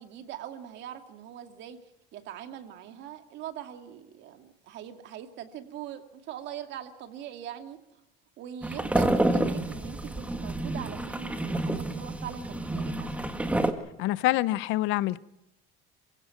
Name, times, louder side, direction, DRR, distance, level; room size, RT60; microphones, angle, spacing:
voice 1, 0.0-1.8 2.1-7.8 8.4-13.3, right 10 dB, 60° right, 2.5 m, -42 dB
sound 1, 8.6-13.7, right 1 dB, 5° right, 1.7 m, -29 dB
voice 2, 14.0-15.2, left 16 dB, 70° left, 0.8 m, -26 dB
28.5 x 16.5 x 5.9 m
cardioid pair, 130°, 21 cm